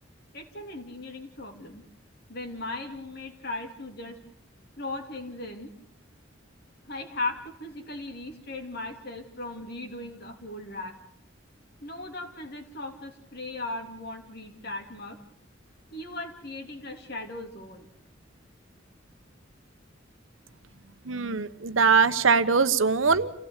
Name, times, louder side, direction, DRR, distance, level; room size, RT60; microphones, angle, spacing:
voice 1, 0.3-1.8 2.3-4.2 4.8-5.7 6.9-11.0 11.8-15.2 15.9-17.9, left 2 dB, 55° left, 4 dB, 3.4 m, -37 dB
voice 2, 21.1-23.3, right 5 dB, 90° right, 12 dB, 1.1 m, -22 dB
29.0 x 16.0 x 8.2 m, 0.74 s
head